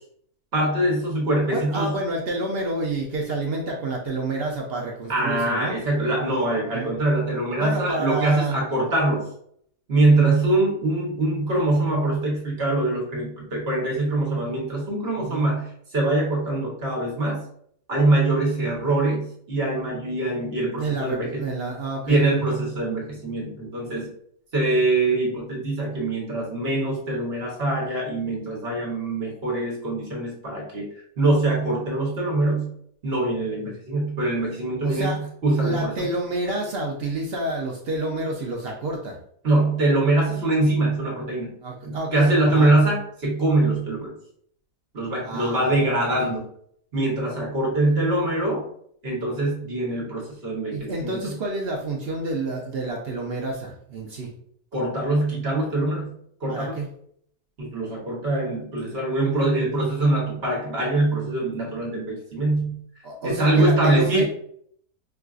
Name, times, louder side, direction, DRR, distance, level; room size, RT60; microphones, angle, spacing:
voice 1, 0.5-1.9 5.1-9.2 9.9-17.4 17.9-21.4 22.1-24.1 24.5-30.9 31.2-32.7 33.0-36.1 39.4-41.5 41.8-44.1 44.9-46.4 46.9-48.6 49.0-51.3 54.7-56.1 56.4-56.8 57.6-62.8 63.2-64.2, right 2 dB, 45° right, -3 dB, 1.2 m, -23 dB
voice 2, 1.4-5.8 6.6-6.9 7.6-8.6 10.1-10.3 15.2-15.4 20.8-22.5 34.8-35.2 35.6-39.2 41.6-42.7 45.2-45.7 46.1-46.3 50.7-54.3 56.5-56.9 63.0-64.2, right 2 dB, 65° right, -1 dB, 0.6 m, -29 dB
4.6 x 2.4 x 2.4 m, 0.65 s
omnidirectional pair, 1.5 m